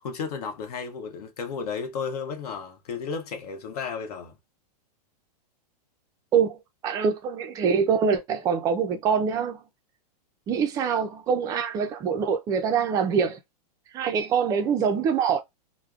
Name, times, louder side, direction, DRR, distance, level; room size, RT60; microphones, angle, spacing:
voice 1, 0.0-4.3, left 5 dB, 65° left, 0.8 m, -33 dB
voice 2, 6.3-9.6 10.5-13.4 13.9-15.4, right 6 dB, 15° right, 0.3 m, -24 dB
3.4 x 2.0 x 2.3 m
supercardioid pair, 150°, 21 cm